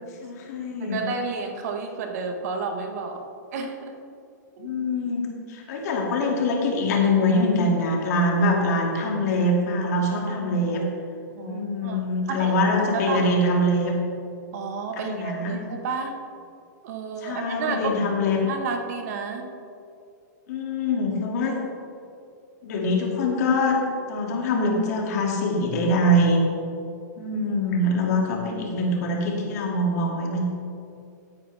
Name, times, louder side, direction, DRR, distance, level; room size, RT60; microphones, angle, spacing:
voice 1, 0.2-1.0 4.6-10.8 11.4-14.0 15.0-15.6 17.2-18.4 20.5-21.7 22.6-23.8 24.1-26.4 27.2-30.4, left 1 dB, 60° left, 0 dB, 2.3 m, -24 dB
voice 2, 0.8-3.2 3.5-4.0 4.6-4.7 11.3-12.0 12.3-12.6 12.9-13.4 14.5-16.2 16.8-17.9 18.4-19.5, right 5 dB, 55° right, 5 dB, 1.3 m, -31 dB
14.0 x 8.6 x 3.4 m, 2.5 s
hypercardioid pair, 145°, 10 cm